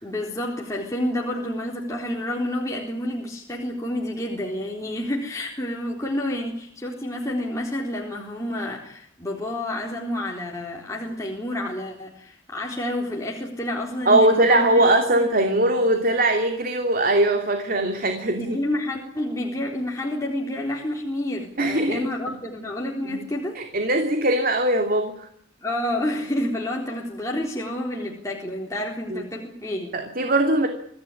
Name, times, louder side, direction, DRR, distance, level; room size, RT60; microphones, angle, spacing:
voice 1, 0.0-14.8 15.1-15.3 18.4-23.6 25.6-30.0, left 1 dB, 15° left, -2 dB, 4.0 m, -29 dB
voice 2, 14.1-18.6 21.6-22.1 23.1-23.2 23.5-25.3 29.1-29.2 29.9-30.7, right 1 dB, 45° right, 5 dB, 2.8 m, -21 dB
25.5 x 16.0 x 9.9 m, 0.71 s
head